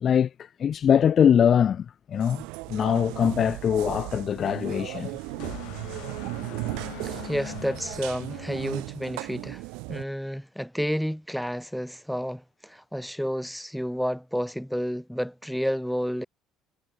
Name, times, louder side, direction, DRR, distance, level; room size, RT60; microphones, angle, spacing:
voice 1, 0.0-2.4 2.7-5.1, left 8 dB, 45° left, 0.7 m, -22 dB
sound 1, 2.1-10.0, right 26 dB, 80° right, 0.9 m, -36 dB
sound 2, 4.7-9.3, left 20 dB, 75° left, 2.2 m, -43 dB
voice 2, 7.0-9.6 9.9-16.3, equal, ahead, 4.9 m, -30 dB
supercardioid pair, 95°, 0 cm